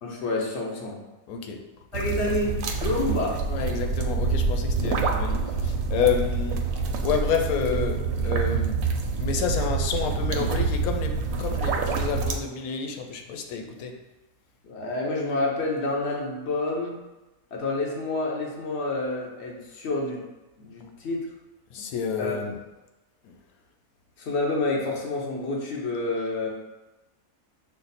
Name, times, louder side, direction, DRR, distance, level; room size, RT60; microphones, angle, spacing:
voice 1, 0.0-1.0 1.9-3.4 4.9-5.0 14.6-17.0 17.5-20.2 20.6-21.3 22.2-22.4 24.2-26.5, left 2 dB, 55° left, -2 dB, 1.1 m, -28 dB
voice 2, 1.3-1.7 3.5-6.7 7.0-8.8 9.2-14.0 21.7-22.5 23.2-23.3, left 7 dB, 85° left, 4 dB, 1.1 m, -29 dB
sound 1, 1.9-12.4, right 4 dB, 85° right, 1.1 m, -26 dB
5.6 x 2.0 x 4.1 m, 1.0 s
omnidirectional pair, 1.5 m